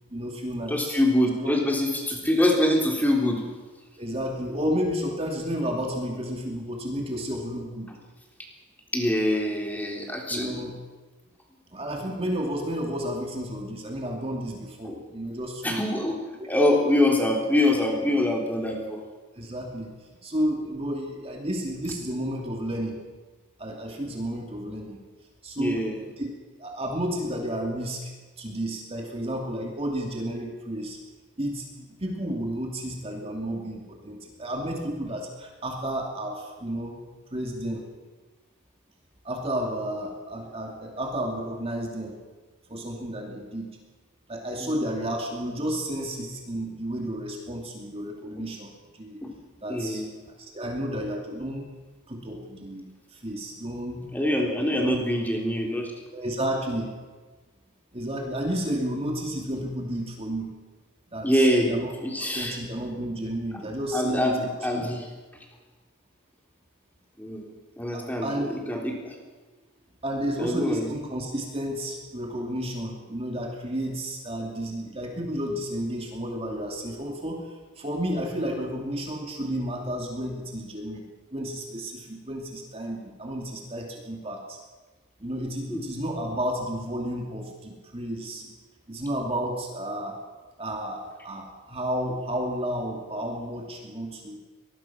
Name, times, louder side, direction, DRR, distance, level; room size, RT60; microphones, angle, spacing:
voice 1, 0.1-1.0 1.4-1.6 4.0-7.9 10.3-10.7 11.7-15.8 16.4-16.5 19.4-19.9 20.2-23.0 23.6-25.0 25.4-25.9 26.2-26.3 26.6-28.1 28.4-31.0 31.4-37.0 37.3-37.8 39.2-42.1 42.7-43.7 44.3-49.2 49.6-50.0 50.4-51.6 52.1-54.1 54.6-55.0 56.1-56.9 57.9-60.5 61.1-61.9 62.3-64.4 64.7-64.8 67.9-68.5 70.0-77.5 77.8-81.0 81.3-84.6 85.2-88.4 88.9-90.2 90.6-94.4, equal, 25° right, 1 dB, 2.5 m, -31 dB
voice 2, 0.7-3.4 7.9-8.0 8.9-10.6 14.9-15.0 15.6-16.2 16.5-19.0 25.6-26.0 44.6-44.8 49.2-49.3 49.7-50.1 54.1-55.9 61.2-61.7 62.0-62.6 63.9-65.1 67.2-67.5 67.8-69.2 70.4-70.9 85.7-85.8, left 1 dB, 10° left, 0 dB, 3.5 m, -24 dB
24.0 x 20.5 x 6.0 m, 1.3 s
head